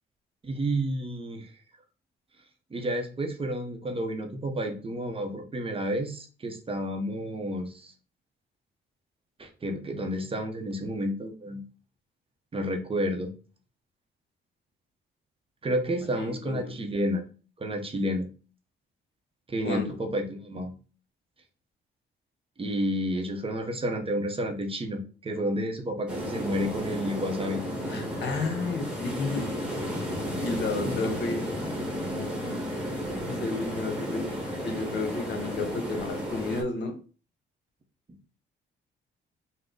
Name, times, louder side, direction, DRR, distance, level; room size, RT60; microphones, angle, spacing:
voice 1, 0.4-1.5 2.7-7.9 9.4-11.6 12.5-13.3 15.6-17.2 17.6-18.3 19.5-20.7 22.6-27.6 30.8-31.0, equal, 30° right, 4 dB, 0.7 m, -30 dB
voice 2, 16.1-16.7 19.6-20.0 27.9-29.5 29.8-30.1 30.4-31.4 32.1-32.6 33.3-34.2 34.6-37.0, left 3 dB, 60° left, 4 dB, 1.0 m, -32 dB
sound 1, 26.1-36.6, equal, 5° right, 1.2 m, -33 dB
3.7 x 2.1 x 3.7 m, 0.37 s
cardioid pair, 90°, 20 cm